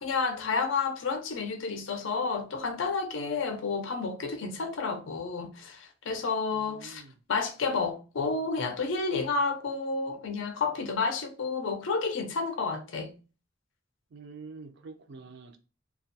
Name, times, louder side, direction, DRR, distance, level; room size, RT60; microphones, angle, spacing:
voice 1, 0.0-7.0 7.3-13.1, left 4 dB, 65° left, 0.4 m, -30 dB
voice 2, 6.5-7.2 14.1-15.6, right 4 dB, 55° right, 0.4 m, -46 dB
2.3 x 2.1 x 2.7 m
head